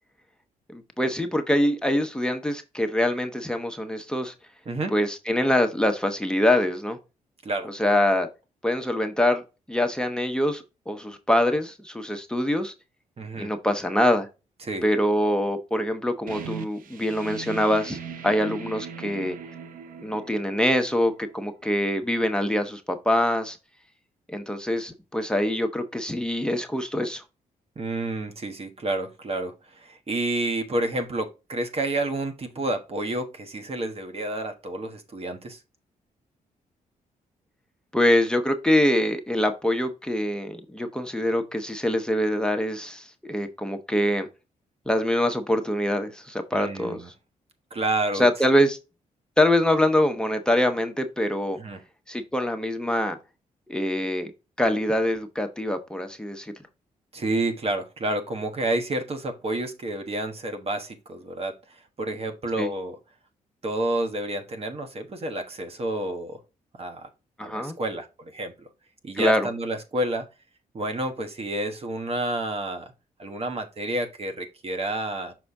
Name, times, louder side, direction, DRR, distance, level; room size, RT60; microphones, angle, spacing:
voice 1, 0.7-4.3 4.9-7.0 7.6-8.3 8.6-9.4 9.7-12.7 13.4-14.3 14.8-18.0 18.2-19.4 20.0-23.6 24.3-27.2 37.9-44.3 44.9-47.1 48.1-48.8 49.4-51.6 52.1-53.2 53.7-54.3 54.6-56.5 62.6-62.7 67.4-67.7 69.1-69.5, left 1 dB, 5° left, 5 dB, 1.0 m, -24 dB
voice 2, 13.2-13.5 14.6-14.8 27.8-35.6 46.5-47.1 47.7-48.3 51.6-51.8 57.1-63.0 63.6-66.4 66.8-67.1 67.4-68.7 69.0-70.2 70.7-72.9 73.2-75.3, right 2 dB, 45° right, 6 dB, 1.2 m, -29 dB
sound 1, 16.3-21.7, right 7 dB, 75° right, 0.7 m, -40 dB
6.3 x 4.1 x 3.5 m, 0.28 s
cardioid pair, 75°, 14 cm